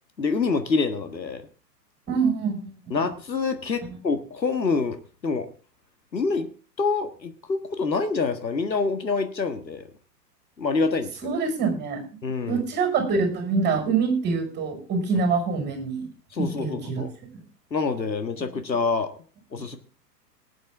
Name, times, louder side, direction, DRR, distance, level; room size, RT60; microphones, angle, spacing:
voice 1, 0.2-1.5 2.9-5.0 5.2-5.5 6.1-6.5 6.8-9.9 10.6-11.1 12.2-12.6 16.3-17.1 17.7-19.1 19.5-19.8, left 4 dB, 85° left, 8 dB, 1.7 m, -26 dB
voice 2, 2.1-3.0 11.2-12.0 12.5-16.1 16.4-17.0, right 5 dB, 20° right, 5 dB, 5.7 m, -25 dB
19.5 x 9.1 x 3.6 m, 0.38 s
figure-of-eight pair, 110°, 50 cm